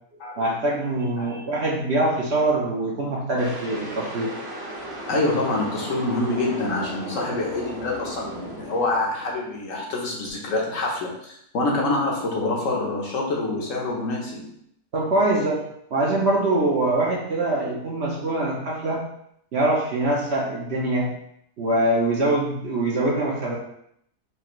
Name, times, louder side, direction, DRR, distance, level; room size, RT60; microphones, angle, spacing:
voice 1, 0.4-4.3 14.9-15.6 15.9-19.0 19.5-21.1 21.6-23.6, right 2 dB, 55° right, -3 dB, 0.9 m, -23 dB
sound 1, 3.4-9.7, right 1 dB, 20° right, 0.7 m, -36 dB
voice 2, 5.1-14.5, left 2 dB, 65° left, -2 dB, 1.2 m, -26 dB
4.9 x 2.7 x 3.1 m, 0.73 s
omnidirectional pair, 1.6 m